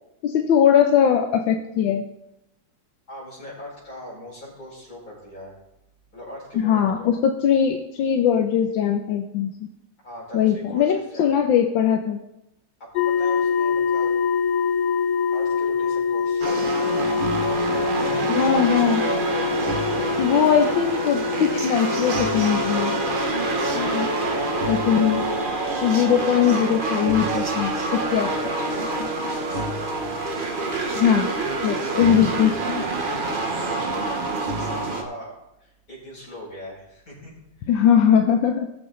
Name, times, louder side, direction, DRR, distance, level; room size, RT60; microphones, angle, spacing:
voice 1, 0.2-2.0 6.5-9.5 10.3-12.2 18.3-19.0 20.2-23.0 23.7-24.1 24.7-25.2 25.8-28.3 30.9-31.3 31.6-32.8 37.7-38.7, left 8 dB, 85° left, 5 dB, 1.5 m, -20 dB
voice 2, 3.1-5.5 6.1-7.1 10.0-11.3 12.8-14.2 15.3-18.9 28.0-29.7 33.4-37.8, left 1 dB, 50° left, -5 dB, 5.5 m, -41 dB
sound 1, 13.0-25.5, left 6 dB, 65° left, 1.0 m, -25 dB
sound 2, 16.4-35.0, right 3 dB, 35° right, 1.0 m, -26 dB
19.0 x 7.2 x 3.8 m, 0.88 s
omnidirectional pair, 2.1 m